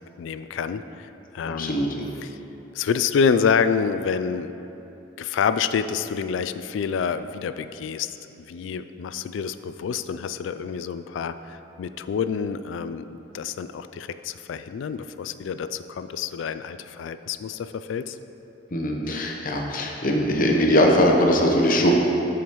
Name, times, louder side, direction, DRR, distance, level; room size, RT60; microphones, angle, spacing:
voice 1, 0.2-1.8 2.2-2.4 2.7-4.5 5.2-8.1 8.4-18.2, left 6 dB, 75° left, 12 dB, 0.3 m, -27 dB
voice 2, 1.4-2.1 18.7-21.9, left 1 dB, 45° left, 1 dB, 0.9 m, -21 dB
12.5 x 4.9 x 3.0 m, 3.0 s
head